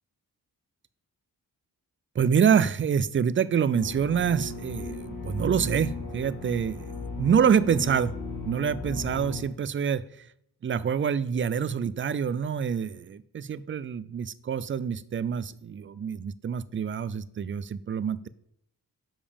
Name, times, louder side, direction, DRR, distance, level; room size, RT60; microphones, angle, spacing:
voice 1, 2.2-8.1 8.5-10.0 10.6-18.3, right 7 dB, 35° right, 16 dB, 0.4 m, -26 dB
sound 1, 3.7-9.4, left 4 dB, 50° left, 1.9 m, -36 dB
7.2 x 5.1 x 5.1 m, 0.71 s
cardioid pair, 80°, 38 cm